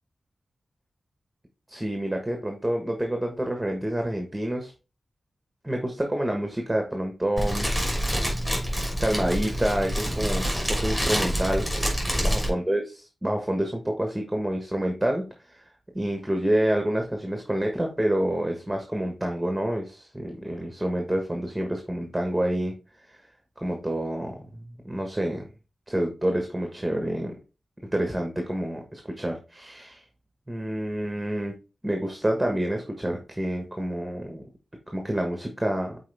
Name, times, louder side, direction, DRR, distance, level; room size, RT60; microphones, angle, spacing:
voice 1, 1.7-4.7 5.6-7.7 9.0-11.7 12.2-15.6 15.9-22.7 23.1-23.3 23.6-25.5 25.9-27.3 27.9-30.0 30.5-31.5 31.8-34.4 34.9-36.0, right 1 dB, 10° right, 3 dB, 1.3 m, -28 dB
Fire, 7.4-12.5, equal, 10° left, 3.3 m, -26 dB
7.7 x 4.4 x 3.4 m, 0.32 s
cardioid pair, 70°, 0 cm